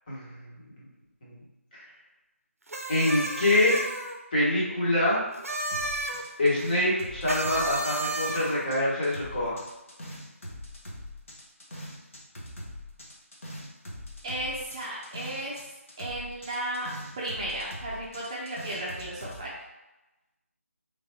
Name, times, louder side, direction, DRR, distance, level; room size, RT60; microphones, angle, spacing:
sound 1, 2.7-4.2 5.3-6.2 7.3-8.7, right 2 dB, 75° right, 0.6 m, -32 dB
voice 1, 2.9-3.8 4.3-5.2 6.4-9.6, left 1 dB, 35° left, -7 dB, 1.3 m, -25 dB
sound 2, 5.7-8.8 9.0-15.6 15.9-19.4, left 1 dB, 65° left, 1.1 m, -42 dB
voice 2, 14.2-15.6 16.0-16.9 17.2-19.5, right 1 dB, 25° right, -6 dB, 0.6 m, -34 dB
3.7 x 3.4 x 2.8 m, 1.0 s
figure-of-eight pair, 160°, 8 cm